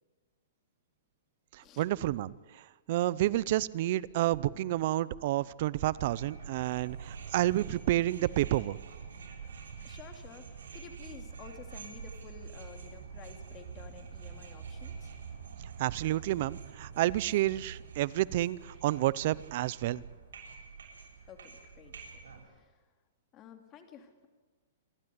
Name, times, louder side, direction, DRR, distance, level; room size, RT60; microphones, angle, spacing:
voice 1, 1.5-8.8 15.8-20.0, right 15 dB, 50° right, 20 dB, 0.6 m, -30 dB
sound 1, 5.9-22.4, right 6 dB, 85° right, 7.4 m, -46 dB
voice 2, 9.8-15.1 21.3-21.9 22.4-22.7 23.3-24.3, left 7 dB, 25° left, 6 dB, 2.8 m, -52 dB
27.5 x 12.5 x 9.5 m, 1.4 s
hypercardioid pair, 155°, 0 cm